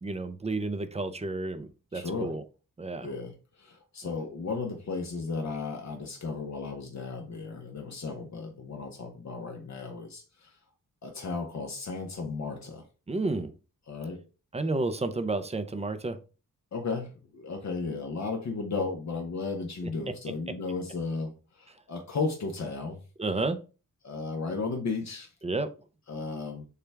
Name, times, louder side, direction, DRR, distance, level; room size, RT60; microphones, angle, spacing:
voice 1, 0.0-2.4 2.8-3.1 13.1-13.5 14.5-16.2 23.2-23.6 25.4-25.7, right 3 dB, 20° right, 0.4 m, -31 dB
voice 2, 1.9-2.3 3.0-10.5 11.0-12.8 13.9-14.2 16.7-23.0 24.0-25.3 26.1-26.7, left 4 dB, 55° left, 0.8 m, -34 dB
6.8 x 2.3 x 3.3 m
wide cardioid pair, 140°, 33 cm